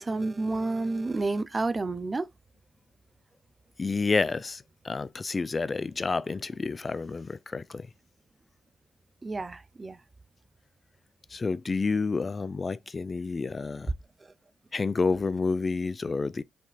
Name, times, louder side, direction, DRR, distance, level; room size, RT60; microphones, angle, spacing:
voice 1, 0.0-2.3 9.2-10.0 14.2-14.3, right 3 dB, 35° right, 0.5 m, -30 dB
voice 2, 3.8-7.9 11.3-13.9 14.7-16.4, left 4 dB, 40° left, 0.3 m, -29 dB
4.3 x 3.6 x 2.3 m
hypercardioid pair, 40°, 0 cm